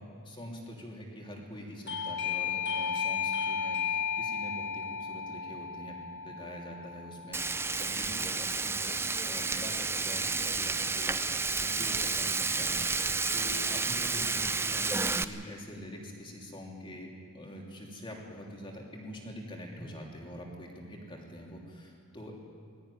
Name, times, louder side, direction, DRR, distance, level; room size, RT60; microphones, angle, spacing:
voice 1, 0.0-6.0 6.2-9.0 9.3-17.1 17.3-22.4, equal, 25° left, -1 dB, 3.1 m, -45 dB
Doorbell, 1.9-8.3, left 6 dB, 55° left, 1.4 m, -34 dB
Frying (food), 7.3-15.2, right 4 dB, 10° right, 0.5 m, -31 dB
20.0 x 13.5 x 9.9 m, 2.3 s
head